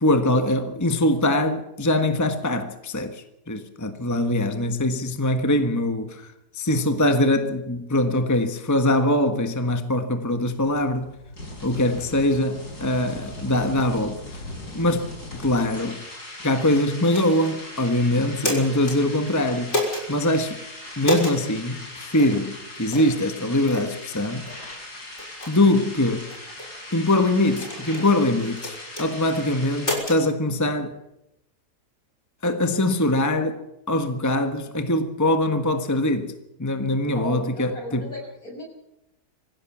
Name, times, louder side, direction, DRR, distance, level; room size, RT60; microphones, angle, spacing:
voice 1, 0.0-6.3 6.5-11.1 11.6-14.4 14.7-16.0 16.4-19.8 20.1-20.6 21.0-24.5 25.5-26.3 26.9-30.9 32.4-36.3 36.6-38.1, left 1 dB, 10° left, 1.3 m, -23 dB
sound 1, 10.2-29.9, left 1 dB, 80° left, 6.2 m, -39 dB
sound 2, 17.1-17.5 18.2-19.0 19.7-20.0 21.0-21.4 22.2-22.3 22.9-23.1 23.7-23.9 24.5-24.6 25.2-25.5 26.3-26.7 27.5-28.1 28.6-29.1 29.8-30.2, left 1 dB, 45° left, 6.5 m, -28 dB
voice 2, 37.1-38.6, left 1 dB, 60° left, 7.6 m, -36 dB
25.0 x 16.0 x 7.3 m
omnidirectional pair, 1.7 m